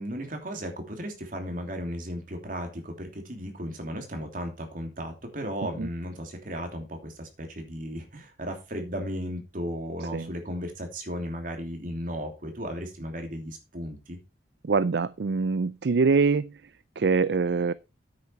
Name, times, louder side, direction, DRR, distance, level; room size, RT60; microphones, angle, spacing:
voice 1, 0.0-14.2, equal, 50° right, 3.0 m, -35 dB
voice 2, 14.6-16.5 17.0-17.7, right 4 dB, 65° right, 0.4 m, -24 dB
9.8 x 8.7 x 4.6 m
head